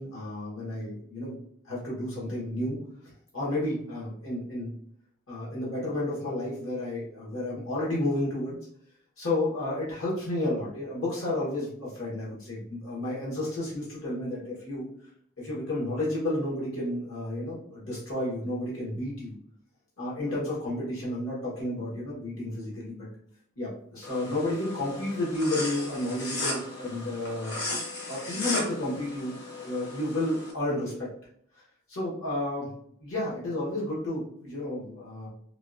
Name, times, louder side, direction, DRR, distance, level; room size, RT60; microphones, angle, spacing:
voice 1, 0.0-1.4 1.6-2.8 3.3-4.7 5.3-8.6 9.2-14.9 15.4-19.3 20.0-23.1 23.6-27.5 28.1-31.1 31.9-32.7 33.0-35.3, left 1 dB, 80° left, -7 dB, 1.3 m, -31 dB
sound 1, 24.0-30.5, left 2 dB, 55° left, 1.0 m, -36 dB
3.7 x 2.4 x 2.6 m, 0.67 s
head